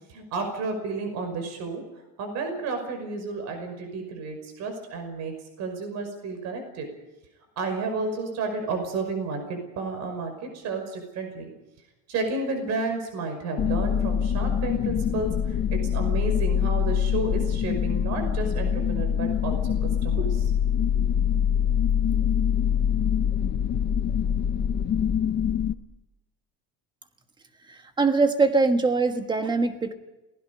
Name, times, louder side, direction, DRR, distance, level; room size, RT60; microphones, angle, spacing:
voice 1, 0.1-1.8 2.2-6.9 7.6-11.5 12.1-19.8 20.0-20.5, right 3 dB, 45° right, 6 dB, 5.7 m, -31 dB
sound 1, 13.6-25.7, left 8 dB, 30° left, 0.7 m, -24 dB
voice 2, 27.7-29.9, right 3 dB, 10° right, 7 dB, 1.3 m, -22 dB
28.5 x 20.0 x 5.5 m, 1.0 s
cardioid pair, 175°, 37 cm